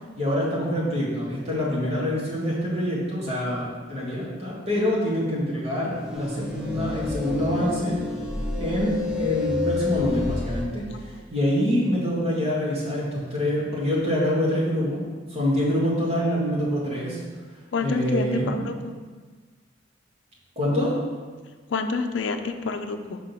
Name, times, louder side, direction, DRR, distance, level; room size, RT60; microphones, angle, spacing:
voice 1, 0.2-8.0 8.6-15.0 15.3-17.2 17.8-18.6 20.6-20.9, equal, 35° right, -6 dB, 1.7 m, -25 dB
sound 1, 6.0-10.7, left 3 dB, 5° right, 0.7 m, -29 dB
voice 2, 17.7-19.0 21.7-23.2, left 4 dB, 70° left, 6 dB, 0.5 m, -28 dB
5.6 x 3.7 x 5.7 m, 1.4 s
head